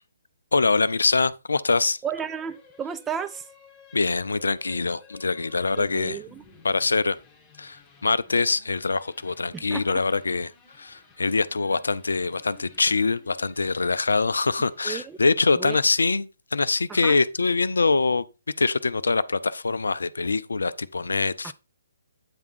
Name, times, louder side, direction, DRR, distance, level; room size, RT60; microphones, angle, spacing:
voice 1, 0.5-2.0 3.9-6.2 6.6-7.2 7.6-10.5 10.8-18.2 18.6-21.5, left 3 dB, 70° left, 0.4 m, -24 dB
voice 2, 2.0-3.5 5.8-6.4 9.5-10.0 14.8-15.2 15.5-15.8 16.9-17.2 21.4-21.5, right 8 dB, 10° right, 0.3 m, -33 dB
sound 1, 2.1-15.7, left 4 dB, 15° left, 1.5 m, -55 dB
8.8 x 3.5 x 4.4 m
figure-of-eight pair, 130°, 0 cm